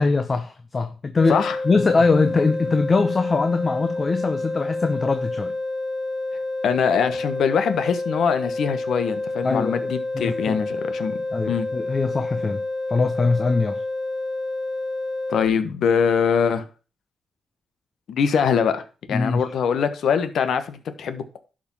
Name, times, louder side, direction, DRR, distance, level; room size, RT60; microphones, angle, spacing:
voice 1, 0.0-5.5 9.4-10.6 11.3-12.6 12.9-13.8 19.1-19.4, left 4 dB, 30° left, 0.9 m, -22 dB
sound 1, 1.2-15.5, left 2 dB, 10° left, 4.8 m, -29 dB
voice 2, 6.6-11.2 11.5-11.7 15.3-16.6 18.1-18.8 19.1-21.4, left 7 dB, 70° left, 1.3 m, -23 dB
11.5 x 5.2 x 5.6 m
cardioid pair, 115°, 0 cm